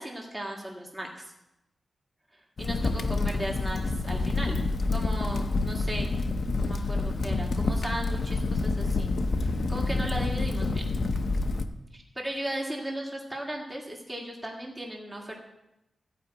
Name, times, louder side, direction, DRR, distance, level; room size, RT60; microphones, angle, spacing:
voice 1, 0.0-1.3 2.6-4.6 4.9-6.1 6.6-10.8 11.9-15.4, right 1 dB, 10° right, -1 dB, 1.8 m, -36 dB
Crackle, 2.6-11.6, left 3 dB, 50° left, 0.7 m, -28 dB
14.0 x 5.0 x 8.7 m, 0.91 s
wide cardioid pair, 175°, 0 cm